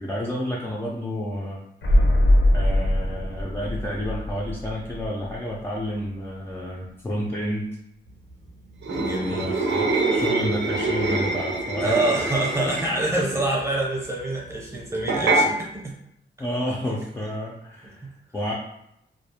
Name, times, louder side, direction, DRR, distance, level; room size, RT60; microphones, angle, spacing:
voice 1, 0.0-1.6 2.5-7.7 9.3-12.1 12.6-13.0 13.3-13.4 15.4-15.6 16.4-18.5, equal, 15° left, -5 dB, 0.3 m, -30 dB
sound 1, 1.8-5.6 5.8-5.9, left 1 dB, 85° left, 0.6 m, -21 dB
sound 2, 8.8-13.0 15.1-15.5, right 2 dB, 75° right, 0.6 m, -24 dB
voice 2, 8.9-9.5 11.8-15.9 18.0-18.1, right 2 dB, 15° right, -3 dB, 0.7 m, -26 dB
2.3 x 2.0 x 2.8 m, 0.76 s
wide cardioid pair, 145°, 18 cm